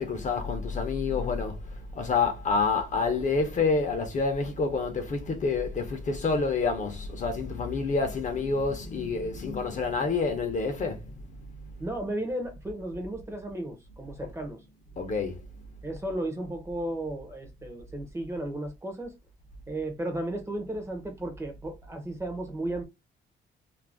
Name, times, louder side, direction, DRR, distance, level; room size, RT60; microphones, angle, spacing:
voice 1, 0.0-11.4 14.2-14.3 15.0-15.4, left 4 dB, 40° left, 0.6 m, -28 dB
voice 2, 11.8-14.6 15.8-19.1 19.7-22.8, right 1 dB, 15° right, 0.6 m, -34 dB
2.4 x 2.1 x 3.2 m
cardioid pair, 160°, 20 cm